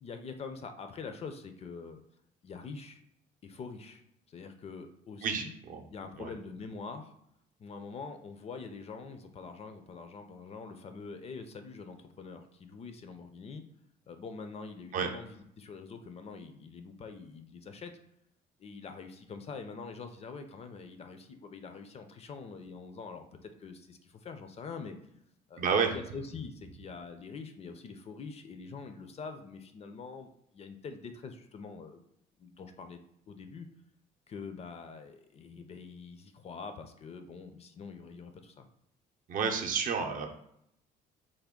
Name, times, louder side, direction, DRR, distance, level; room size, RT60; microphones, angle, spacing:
voice 1, 0.0-2.0 2.4-3.0 3.4-4.0 4.3-5.5 5.9-7.1 7.6-13.6 14.1-17.9 18.6-24.9 25.5-25.6 25.9-32.0 32.4-33.0 33.3-33.7 34.3-38.7, left 4 dB, 40° left, 7 dB, 0.4 m, -44 dB
voice 2, 5.2-5.8 6.2-6.3 14.9-15.1 25.6-25.9 39.3-40.3, right 6 dB, 50° right, 4 dB, 0.6 m, -30 dB
3.4 x 2.2 x 3.6 m, 0.74 s
cardioid pair, 110°, 17 cm